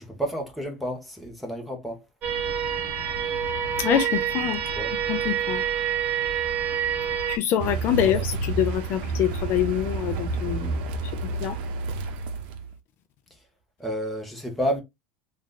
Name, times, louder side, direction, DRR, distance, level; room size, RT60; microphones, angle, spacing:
voice 1, 0.0-2.0 4.7-4.9 8.0-8.2 13.8-14.8, equal, ahead, 1.1 m, -30 dB
sound 1, 2.2-7.4, right 8 dB, 30° right, 1.0 m, -27 dB
voice 2, 3.8-4.6 5.1-5.6 7.3-10.8 11.4-11.6, left 10 dB, 45° left, 0.4 m, -25 dB
Car, 7.6-12.7, right 3 dB, 70° right, 0.7 m, -30 dB
3.1 x 2.6 x 3.8 m
supercardioid pair, 135°, 5 cm